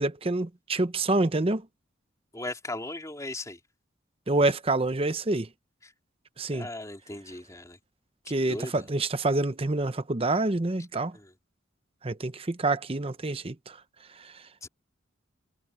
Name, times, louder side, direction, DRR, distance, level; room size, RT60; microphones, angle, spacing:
voice 1, 0.0-1.6 4.3-5.5 6.4-6.7 8.3-11.2 12.0-13.8, right 2 dB, 30° right, 0.8 m, -27 dB
voice 2, 2.3-3.6 5.8-5.9 6.5-7.8 8.3-8.9 11.1-11.3 14.6-14.7, left 2 dB, 15° left, 3.1 m, -38 dB
head